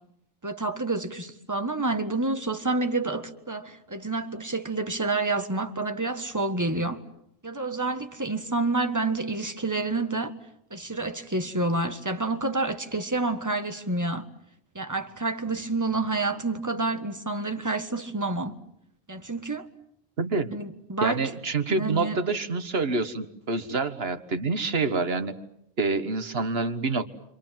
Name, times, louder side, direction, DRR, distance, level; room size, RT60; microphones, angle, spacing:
voice 1, 0.4-7.0 7.4-10.3 10.7-14.3 14.7-18.5 19.1-19.7 20.5-21.2 21.7-22.2, right 2 dB, 15° right, 1.5 m, -28 dB
voice 2, 20.2-20.5 21.0-25.3 25.8-27.1, right 3 dB, 50° right, 1.7 m, -27 dB
29.5 x 25.5 x 7.5 m
omnidirectional pair, 1.3 m